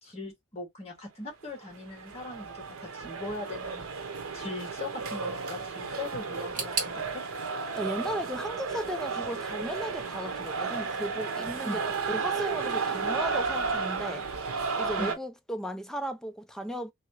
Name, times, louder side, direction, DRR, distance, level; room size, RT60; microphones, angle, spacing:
voice 1, 0.0-3.9 4.3-7.2 11.6-11.8 15.0-15.2, left 2 dB, 30° left, 1.6 m, -40 dB
sound 1, 1.5-15.1, right 4 dB, 85° right, 0.8 m, -33 dB
sound 2, 6.5-9.4 9.7-10.5 10.8-10.9 11.7-11.8, right 5 dB, 40° right, 1.7 m, -39 dB
voice 2, 7.7-11.8 12.1-14.3 14.8-16.9, equal, 5° left, 0.4 m, -35 dB
3.3 x 2.8 x 2.9 m
head